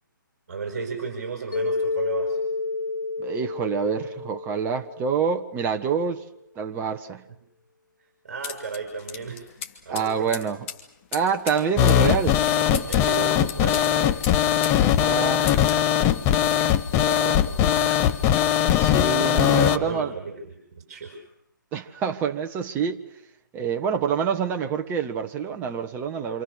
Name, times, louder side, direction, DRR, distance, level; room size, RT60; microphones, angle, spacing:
voice 1, 0.5-2.4 7.3-7.4 8.2-9.5 9.8-10.3 12.5-14.3 14.9-18.2 19.5-21.2, right 5 dB, 50° right, 5.2 m, -34 dB
Mallet percussion, 1.5-5.7, left 3 dB, 75° left, 4.4 m, -30 dB
voice 2, 3.2-6.2 6.5-7.2 9.9-10.6 11.1-12.4 14.9-15.5 18.7-20.1 21.7-23.0 23.5-26.4, right 6 dB, 20° right, 1.5 m, -26 dB
sound 1, 8.4-14.8 15.1-15.9, left 8 dB, 35° left, 3.0 m, -38 dB
sound 2, 11.8-19.8, left 11 dB, 20° left, 1.1 m, -20 dB
28.0 x 28.0 x 6.5 m
figure-of-eight pair, 140°, 11 cm